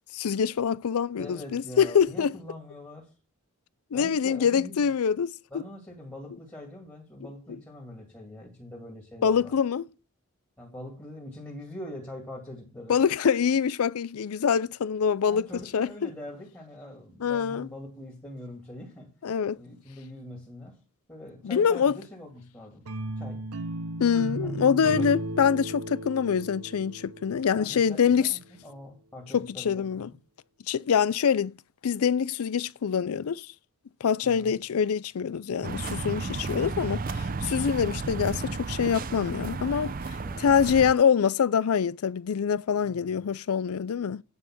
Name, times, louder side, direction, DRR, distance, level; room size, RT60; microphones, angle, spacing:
voice 1, 0.1-2.3 3.9-5.3 9.2-9.8 12.9-15.4 15.7-16.1 17.2-17.7 19.2-19.6 21.4-22.0 24.0-28.4 29.3-30.1 30.7-31.5 31.8-33.5 34.0-44.2, left 7 dB, 80° left, 0.4 m, -25 dB
voice 2, 1.2-3.1 3.9-4.8 5.5-9.6 10.6-13.0 15.3-19.1 19.5-20.8 21.1-22.9 23.2-23.4 24.4-25.1 27.6-30.2 34.2-34.5 40.2-40.4 42.8-43.1, left 1 dB, 15° left, 2.4 m, -43 dB
sound 1, 22.9-28.0, right 2 dB, 90° right, 0.9 m, -35 dB
sound 2, 35.6-40.9, right 3 dB, 40° right, 0.5 m, -33 dB
9.6 x 5.6 x 6.0 m
head